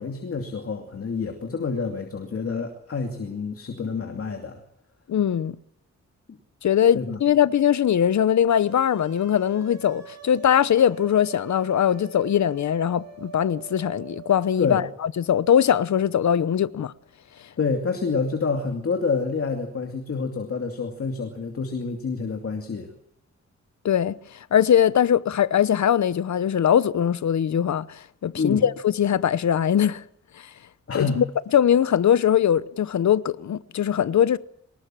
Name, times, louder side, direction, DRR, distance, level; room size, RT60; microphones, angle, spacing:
voice 1, 0.0-4.6 6.9-7.2 14.6-14.9 17.6-22.9 28.3-28.6 30.9-31.2, left 4 dB, 50° left, 2.6 m, -28 dB
voice 2, 5.1-5.6 6.6-16.9 23.8-24.1 24.5-30.0 30.9-31.2 31.5-34.4, left 9 dB, 70° left, 1.0 m, -21 dB
sound 1, 8.5-14.7, right 6 dB, 60° right, 6.7 m, -44 dB
23.5 x 20.5 x 7.6 m
wide cardioid pair, 160°, 29 cm